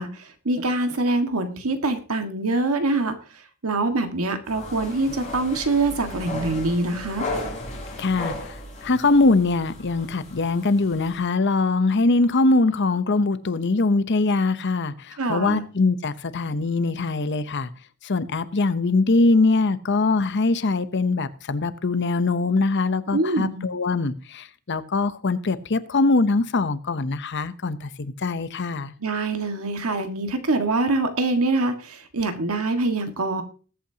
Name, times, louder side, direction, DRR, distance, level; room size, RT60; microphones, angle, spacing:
voice 1, 0.0-3.1 3.6-7.2 15.2-15.6 23.1-23.7 29.0-33.4, right 2 dB, 75° right, 1.7 m, -24 dB
sound 1, 4.5-11.2, left 2 dB, 30° left, 5.0 m, -35 dB
voice 2, 8.0-17.7 18.0-28.9, left 3 dB, 55° left, 0.8 m, -22 dB
20.5 x 8.5 x 2.8 m
head